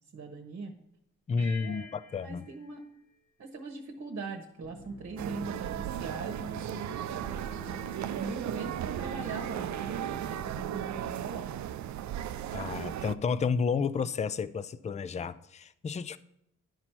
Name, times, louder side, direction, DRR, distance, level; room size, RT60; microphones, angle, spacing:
voice 1, 0.1-0.7 1.6-1.9 2.2-2.8 3.4-7.4 7.7-7.8 8.2-11.5, right 4 dB, 45° right, 1.1 m, -41 dB
voice 2, 1.3-2.5 12.5-16.2, left 5 dB, 20° left, 0.4 m, -31 dB
sound 1, 1.4-4.1, left 5 dB, 75° left, 3.2 m, -51 dB
sound 2, 4.6-11.5, left 1 dB, 45° left, 1.2 m, -49 dB
sound 3, 5.2-13.2, right 11 dB, 60° right, 0.4 m, -36 dB
11.0 x 4.4 x 4.3 m
supercardioid pair, 60°, 32 cm